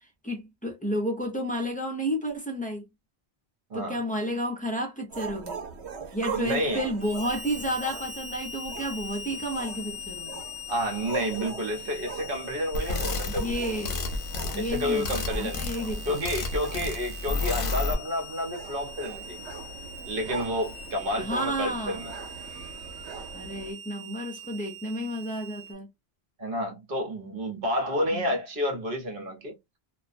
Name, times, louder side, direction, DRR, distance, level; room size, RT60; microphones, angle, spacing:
voice 1, 0.2-2.9 3.7-5.7 6.1-10.4 13.2-14.0 14.5-16.4 21.2-22.0 23.3-25.9 28.1-28.2, equal, 10° left, 0.5 m, -31 dB
sound 1, 5.1-23.7, right 5 dB, 85° right, 1.0 m, -41 dB
voice 2, 6.3-6.8 10.7-13.6 14.5-15.6 16.0-19.4 20.1-22.1 26.4-29.6, equal, 55° right, 1.1 m, -30 dB
Harmonica, 7.0-25.7, left 2 dB, 30° left, 1.0 m, -42 dB
sound 2, 12.7-17.9, left 3 dB, 60° left, 0.8 m, -31 dB
2.4 x 2.1 x 2.4 m
omnidirectional pair, 1.1 m